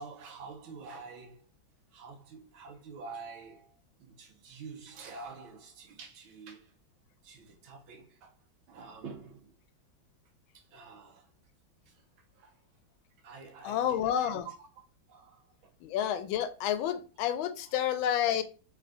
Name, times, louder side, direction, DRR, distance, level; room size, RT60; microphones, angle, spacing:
voice 1, 0.0-1.4 1.9-6.7 7.2-8.3 8.7-9.5 10.5-11.3 11.9-12.0 12.3-12.5 13.2-14.5 15.1-15.4 16.8-16.9, right 4 dB, 90° right, 1.7 m, -47 dB
voice 2, 13.6-14.5 15.8-18.4, left 10 dB, 90° left, 1.4 m, -29 dB
3.6 x 3.3 x 3.7 m
omnidirectional pair, 2.1 m